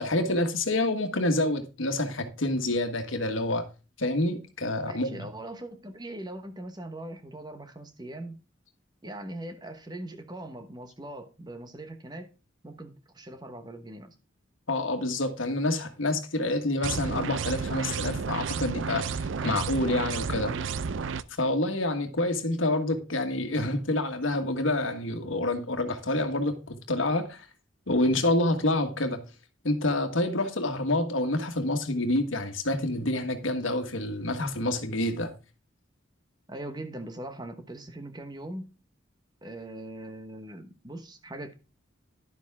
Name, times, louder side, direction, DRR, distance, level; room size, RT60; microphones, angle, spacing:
voice 1, 0.0-3.7 4.0-5.3 14.7-20.5 21.4-27.5 27.9-29.2 29.6-35.3, left 2 dB, 85° left, 1.5 m, -27 dB
voice 2, 4.8-8.4 9.0-12.3 12.6-14.1 19.4-19.5 19.8-20.0 20.4-20.7 36.5-38.7 39.4-41.5, right 1 dB, 20° right, 1.1 m, -41 dB
sound 1, 16.8-21.2, right 5 dB, 75° right, 0.5 m, -31 dB
11.0 x 7.1 x 3.6 m
head